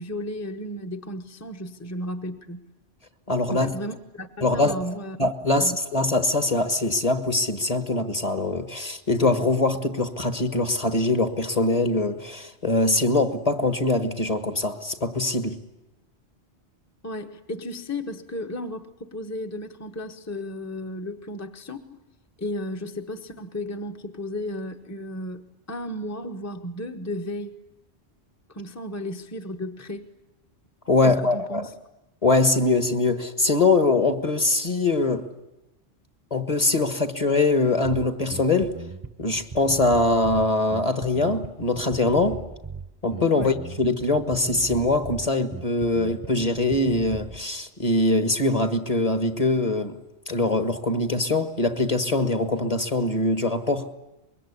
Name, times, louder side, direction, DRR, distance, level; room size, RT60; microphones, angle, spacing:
voice 1, 0.0-2.6 3.5-5.2 5.6-5.8 17.0-22.0 22.4-27.5 28.5-30.1 31.0-31.7 43.3-43.5, left 1 dB, 15° left, 1.1 m, -34 dB
voice 2, 3.3-3.7 4.4-4.7 5.2-15.6 30.9-31.7 32.2-35.2 36.3-38.7 39.2-42.4 43.0-50.0 50.3-53.9, left 2 dB, 35° left, 1.6 m, -23 dB
Bass guitar, 37.8-47.4, right 3 dB, 20° right, 0.9 m, -39 dB
25.0 x 22.0 x 9.9 m
omnidirectional pair, 1.1 m